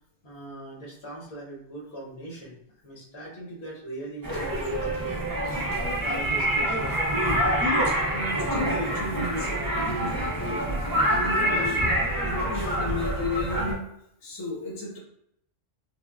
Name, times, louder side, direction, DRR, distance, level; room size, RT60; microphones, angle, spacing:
voice 1, 0.2-2.6 2.8-5.2 6.0-7.3, right 1 dB, 65° left, -4 dB, 1.1 m, -40 dB
sound 1, 4.2-13.7, right 1 dB, 30° right, 0.4 m, -26 dB
voice 2, 5.3-5.8 7.8-11.8 12.2-13.9 14.2-15.0, left 2 dB, 25° left, -5 dB, 0.7 m, -34 dB
3.4 x 2.1 x 2.2 m, 0.72 s
omnidirectional pair, 1.2 m